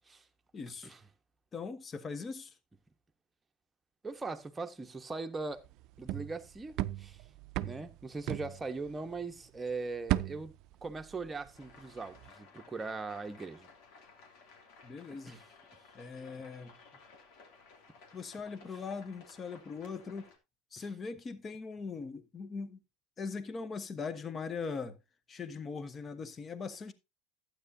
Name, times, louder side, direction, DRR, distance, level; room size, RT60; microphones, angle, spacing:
voice 1, 0.5-0.9 1.5-2.5 14.8-15.4 15.9-16.7 18.1-20.3 20.7-22.8 23.2-25.0 25.3-26.9, left 5 dB, 30° left, 1.1 m, -40 dB
voice 2, 4.0-5.7 6.0-7.2 7.6-10.5 10.8-13.7 15.3-15.4 20.8-20.9, right 3 dB, 15° right, 1.2 m, -40 dB
sound 1, 5.6-9.4 9.7-11.7 12.0-12.3, right 15 dB, 55° right, 0.4 m, -37 dB
sound 2, 11.5-20.4, left 4 dB, 60° left, 2.7 m, -57 dB
12.0 x 9.1 x 2.7 m
hypercardioid pair, 100°, 0 cm